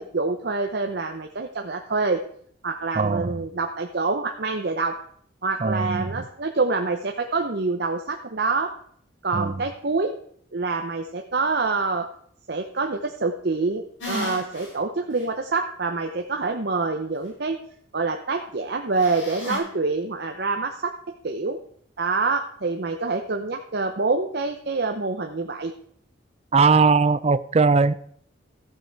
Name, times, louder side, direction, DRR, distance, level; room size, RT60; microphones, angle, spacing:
voice 1, 0.0-2.2 2.6-4.9 5.4-8.7 9.2-10.1 10.5-12.1 12.5-17.6 17.9-20.9 21.2-21.6 22.0-25.7, right 3 dB, 55° right, 0.7 m, -26 dB
voice 2, 3.0-3.4 5.6-6.1 9.3-9.6 26.5-28.0, right 4 dB, 30° right, 0.4 m, -20 dB
sound 1, 14.0-14.7 15.2-15.3 19.0-19.6, left 1 dB, 75° left, 5.1 m, -33 dB
14.0 x 7.5 x 4.7 m
head